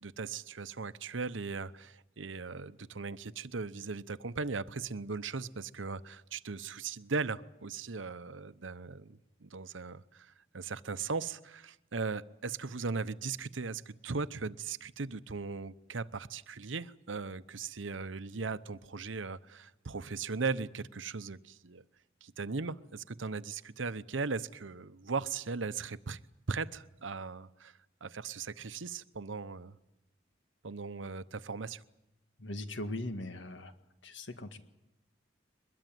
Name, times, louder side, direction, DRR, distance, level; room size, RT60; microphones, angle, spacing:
voice 1, 0.0-21.8 22.2-26.2 26.5-29.8 30.6-31.8, right 4 dB, 85° right, 14 dB, 0.9 m, -38 dB
voice 2, 32.4-33.7 34.0-34.6, left 1 dB, 75° left, 8 dB, 2.0 m, -39 dB
23.0 x 21.0 x 9.3 m, 0.90 s
head